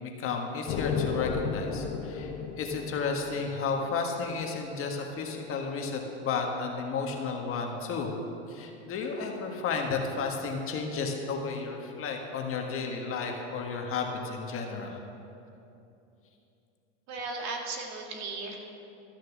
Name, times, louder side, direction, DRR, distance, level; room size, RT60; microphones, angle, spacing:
voice 1, 0.0-2.3 2.6-8.1 8.5-15.0, left 4 dB, 35° left, 2 dB, 1.5 m, -32 dB
sound 1, 0.7-4.4, left 6 dB, 60° left, 1.1 m, -34 dB
voice 2, 17.1-18.6, right 3 dB, 45° right, 1 dB, 2.1 m, -36 dB
13.0 x 6.4 x 7.3 m, 2.7 s
hypercardioid pair, 100°, 36 cm